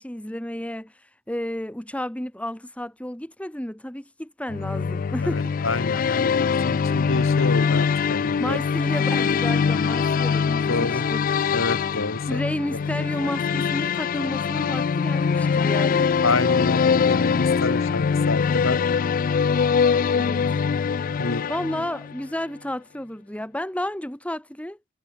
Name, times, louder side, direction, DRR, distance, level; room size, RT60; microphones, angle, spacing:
voice 1, 0.0-5.5 8.4-11.3 12.3-16.2 20.1-20.5 21.5-24.8, left 1 dB, 5° left, 1.3 m, -32 dB
sound 1, 4.5-22.2, left 6 dB, 40° left, 0.3 m, -23 dB
voice 2, 5.2-8.6 10.7-11.1 11.5-12.4 16.2-18.9 21.2-21.5, left 2 dB, 70° left, 3.1 m, -28 dB
head